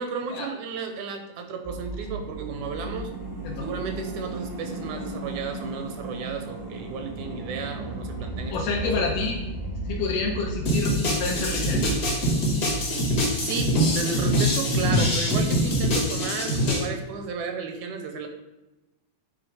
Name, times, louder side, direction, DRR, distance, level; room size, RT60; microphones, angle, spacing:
voice 1, 0.0-3.1 3.6-8.6 8.8-9.1 13.3-18.3, right 5 dB, 80° right, 5 dB, 1.9 m, -33 dB
sound 1, 1.6-14.1 14.3-14.4, right 2 dB, 30° right, 0.7 m, -35 dB
voice 2, 8.5-9.4 9.9-11.8, left 4 dB, 80° left, -1 dB, 2.3 m, -28 dB
sound 2, 10.7-16.8, equal, 50° left, 1.0 m, -24 dB
8.9 x 3.5 x 4.7 m, 1.0 s
omnidirectional pair, 3.7 m